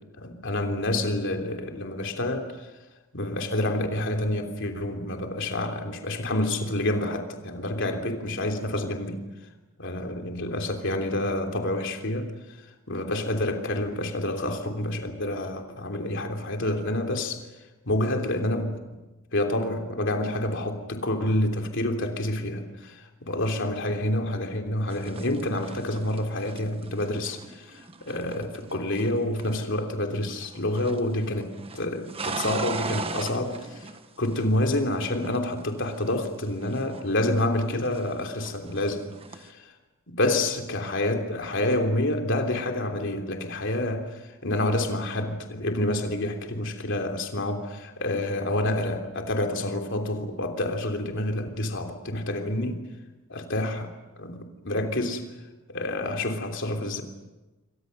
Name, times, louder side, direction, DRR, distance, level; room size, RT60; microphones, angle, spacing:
voice 1, 0.2-2.7 3.1-9.2 9.8-12.3 12.9-17.4 17.8-18.8 19.3-33.9 34.2-39.7 40.1-52.8 53.3-53.9 54.2-55.2 55.7-57.0, left 1 dB, 60° left, 4 dB, 3.2 m, -28 dB
sound 1, 24.9-29.8 30.1-31.1 31.3-34.8 35.1-37.5 37.8-39.5, right 3 dB, 25° right, 1.4 m, -38 dB
28.5 x 24.0 x 6.7 m, 1.1 s
head